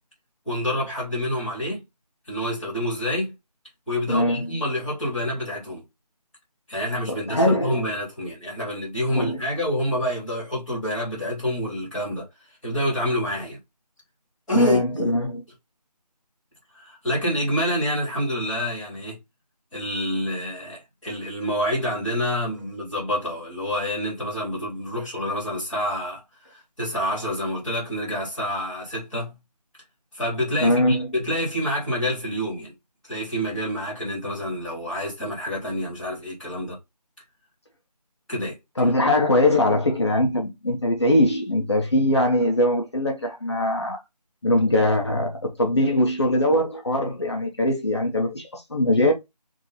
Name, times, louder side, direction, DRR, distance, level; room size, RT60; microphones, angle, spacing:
voice 1, 0.4-1.8 2.3-3.3 3.9-5.8 6.7-12.3 12.6-13.6 14.5-15.2 16.7-19.1 19.7-26.2 26.5-29.3 30.1-32.7 33.0-36.8 38.3-38.6, equal, ahead, 1.6 m, -27 dB
voice 2, 4.1-4.5 7.1-7.8 9.1-9.4 14.5-15.4 30.6-31.1 38.8-44.0 44.4-49.1, left 1 dB, 40° left, 1.0 m, -21 dB
3.7 x 3.3 x 4.1 m
figure-of-eight pair, 175°, 21 cm